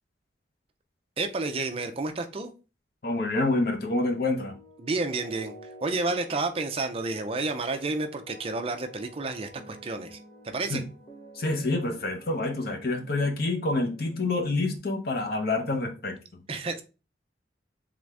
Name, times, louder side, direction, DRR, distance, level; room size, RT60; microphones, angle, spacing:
voice 1, 1.2-2.5 4.8-5.5 5.8-10.2 10.4-10.8 16.5-16.8, right 3 dB, 30° right, 0.5 m, -30 dB
voice 2, 3.0-4.6 10.7-10.8 11.4-16.4, left 2 dB, 55° left, 0.9 m, -27 dB
sound 1, 4.0-14.8, equal, 25° left, 0.9 m, -49 dB
3.8 x 3.5 x 3.2 m
head